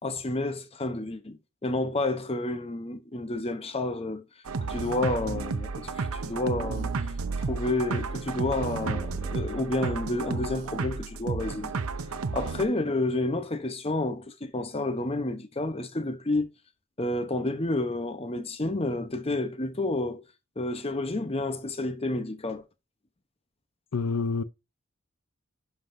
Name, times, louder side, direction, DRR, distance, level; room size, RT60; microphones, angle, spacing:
voice 1, 0.0-4.2 4.6-11.8 12.3-16.5 17.0-20.2 20.6-22.7, left 2 dB, 25° left, 0.9 m, -30 dB
sound 1, 4.4-12.6, right 4 dB, 85° right, 0.7 m, -32 dB
voice 2, 23.9-24.4, left 4 dB, 75° left, 0.6 m, -27 dB
11.0 x 5.6 x 2.7 m
head